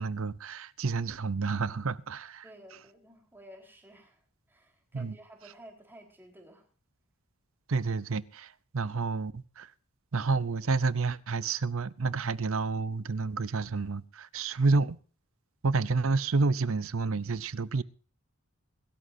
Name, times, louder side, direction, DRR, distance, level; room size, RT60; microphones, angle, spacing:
voice 1, 0.0-2.4 4.9-5.1 7.7-9.7 10.1-15.0 15.6-17.8, right 4 dB, 65° right, 0.7 m, -29 dB
voice 2, 2.4-6.7, right 1 dB, 10° right, 4.2 m, -53 dB
23.0 x 12.5 x 2.7 m
head